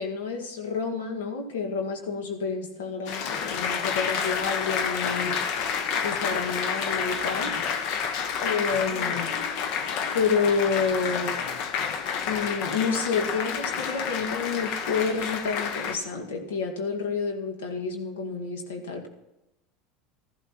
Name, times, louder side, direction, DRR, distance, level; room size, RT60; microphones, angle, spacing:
voice 1, 0.0-5.4 6.0-7.5 8.4-9.4 10.1-11.4 12.3-19.1, left 5 dB, 75° left, 3 dB, 1.7 m, -29 dB
Applause, 3.1-16.0, left 6 dB, 60° left, 1.0 m, -29 dB
15.5 x 13.5 x 3.0 m, 0.93 s
hypercardioid pair, 80°, 0 cm